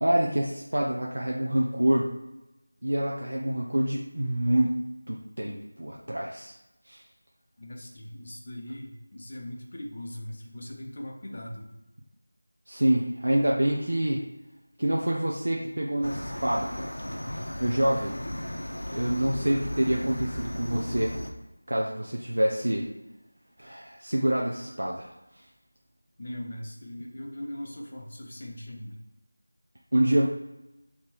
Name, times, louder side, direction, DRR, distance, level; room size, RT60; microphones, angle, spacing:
voice 1, 0.0-2.1 2.8-4.8 5.1-6.5 6.8-7.0 12.7-14.3 14.8-16.9 17.3-18.1 18.9-21.1 21.7-22.9 23.6-25.1 25.3-25.4 29.9-30.3, right 1 dB, 75° right, -2 dB, 0.6 m, -26 dB
voice 2, 7.6-11.7 18.0-18.1 26.2-29.0, left 1 dB, 25° left, 0 dB, 0.5 m, -40 dB
sound 1, 16.0-21.3, equal, 70° left, 0.6 m, -35 dB
3.6 x 2.9 x 4.5 m, 0.98 s
figure-of-eight pair, 180°, 0 cm